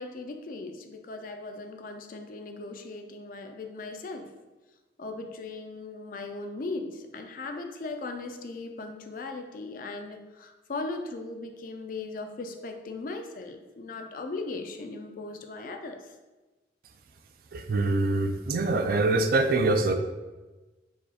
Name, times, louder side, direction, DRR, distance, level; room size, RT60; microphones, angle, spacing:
voice 1, 0.0-4.3 5.0-16.1, left 3 dB, 50° left, 5 dB, 0.4 m, -38 dB
voice 2, 17.5-19.9, right 2 dB, 50° right, 7 dB, 0.4 m, -24 dB
4.8 x 2.4 x 4.1 m, 1.2 s
head